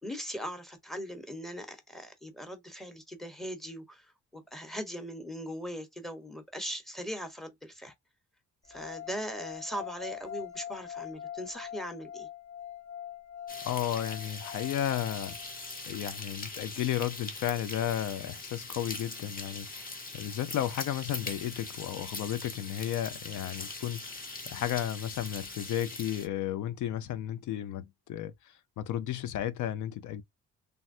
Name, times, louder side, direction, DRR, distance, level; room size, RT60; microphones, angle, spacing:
voice 1, 0.0-7.9 8.7-12.3, equal, ahead, 1.0 m, -40 dB
sound 1, 8.7-15.8, left 10 dB, 55° left, 1.7 m, -43 dB
sound 2, 13.5-26.3, left 2 dB, 30° left, 1.0 m, -42 dB
voice 2, 13.6-15.4 15.9-30.2, left 11 dB, 80° left, 0.5 m, -33 dB
3.4 x 2.1 x 2.6 m
cardioid pair, 90°, 30 cm